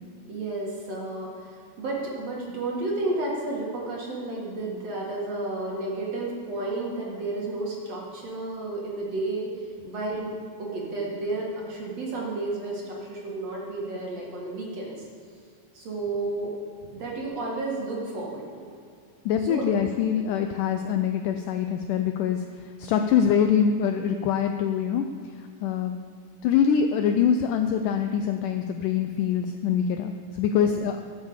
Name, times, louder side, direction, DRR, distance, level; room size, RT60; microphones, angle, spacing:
voice 1, 0.3-9.5 9.8-10.3 10.6-15.0 15.7-16.5 16.9-18.7 19.4-19.9 30.5-30.7, right 2 dB, 50° right, -3 dB, 2.8 m, -32 dB
voice 2, 19.3-22.5 22.8-25.1 25.6-26.0 26.4-31.0, left 8 dB, 80° left, 7 dB, 1.9 m, -24 dB
13.5 x 7.4 x 7.3 m, 2.3 s
omnidirectional pair, 4.2 m